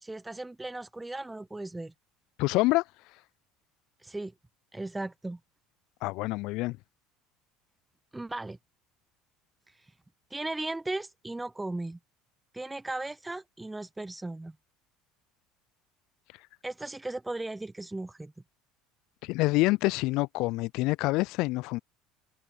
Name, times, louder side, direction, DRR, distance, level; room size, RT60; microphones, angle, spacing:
voice 1, 0.0-1.9 4.0-4.3 4.7-5.4 8.1-8.6 10.3-12.0 12.5-14.5 16.6-18.3, right 2 dB, 10° right, 1.3 m, -36 dB
voice 2, 2.4-2.8 6.0-6.8 19.2-21.8, left 22 dB, 65° left, 0.3 m, -26 dB
hypercardioid pair, 70°, 0 cm